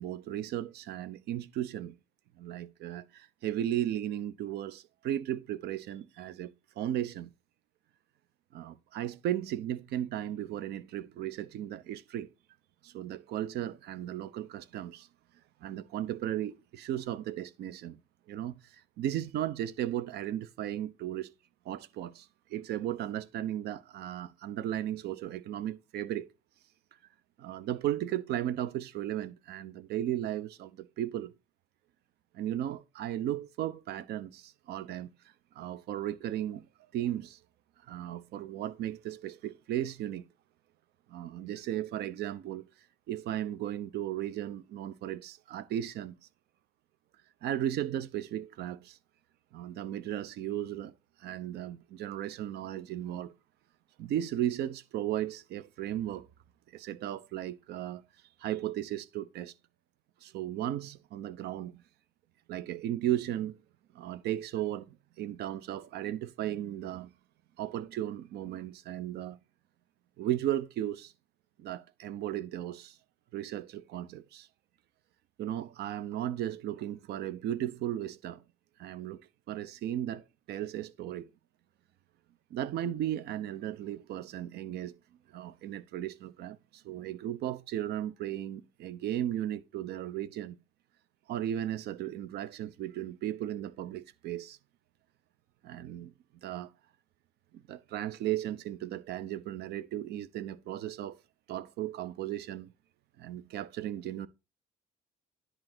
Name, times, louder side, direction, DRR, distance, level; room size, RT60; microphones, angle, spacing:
voice 1, 0.0-1.9 2.4-6.5 6.8-7.3 8.5-12.3 12.8-15.1 15.6-18.0 18.3-18.6 19.0-21.3 21.6-26.3 27.4-31.3 32.3-35.1 35.5-36.6 36.9-37.4 37.9-40.2 41.1-42.7 43.1-46.1 47.4-49.0 49.5-50.9 51.2-53.3 54.0-56.3 56.7-58.0 58.4-59.5 60.2-61.7 62.5-63.6 63.9-67.1 67.6-69.4 70.2-71.1 71.6-73.0 73.3-74.5 75.4-78.4 78.8-79.2 79.5-81.3 82.5-84.9 85.3-90.6 91.3-94.6 95.6-96.1 96.4-96.7 97.7-101.2 101.5-102.7 103.2-104.3, right 12 dB, 75° right, 0.9 m, -35 dB
10.5 x 3.9 x 6.1 m
cardioid pair, 110°, 17 cm